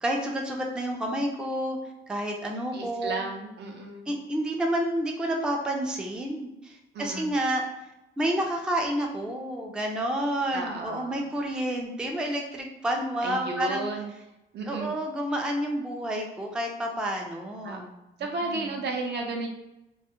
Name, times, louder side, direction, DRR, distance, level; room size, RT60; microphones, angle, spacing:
voice 1, 0.0-1.8 2.1-3.2 4.1-7.6 8.2-13.8 14.7-17.9 18.4-18.7, right 1 dB, 5° right, 1 dB, 0.3 m, -29 dB
voice 2, 2.7-4.1 6.9-7.3 10.5-11.3 13.2-14.1 14.5-14.9 17.6-17.9 18.2-19.5, right 3 dB, 60° right, 2 dB, 0.5 m, -33 dB
2.2 x 2.0 x 2.9 m, 0.90 s
cardioid pair, 90°, 20 cm